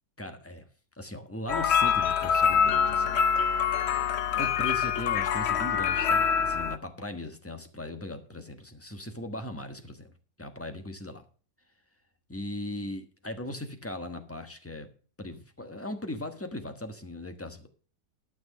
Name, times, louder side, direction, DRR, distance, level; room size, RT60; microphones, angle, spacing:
voice 1, 0.2-0.7 1.0-3.2 4.3-10.1 10.4-11.2 12.3-14.9 15.2-17.7, left 1 dB, 10° left, 7 dB, 1.1 m, -38 dB
sound 1, 1.5-6.8, left 7 dB, 60° left, 0.7 m, -25 dB
12.0 x 6.3 x 6.3 m, 0.40 s
omnidirectional pair, 1.8 m